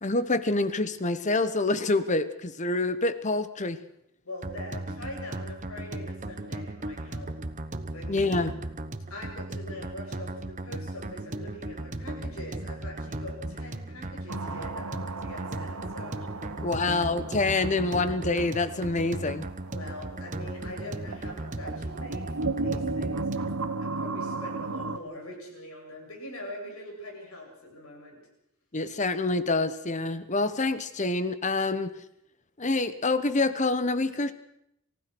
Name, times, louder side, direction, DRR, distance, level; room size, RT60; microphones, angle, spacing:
voice 1, 0.0-3.8 8.1-8.5 16.6-19.4 28.7-31.9 32.6-34.3, left 2 dB, 35° left, 13 dB, 1.2 m, -26 dB
voice 2, 4.2-7.3 7.9-8.4 9.1-16.2 16.7-17.0 19.7-23.5 23.8-28.2, left 1 dB, 75° left, 1 dB, 7.9 m, -43 dB
sound 1, 4.4-23.6, right 2 dB, 35° right, 1.0 m, -37 dB
sound 2, 14.3-25.0, right 3 dB, 85° right, 1.2 m, -36 dB
28.0 x 15.5 x 6.2 m, 0.79 s
head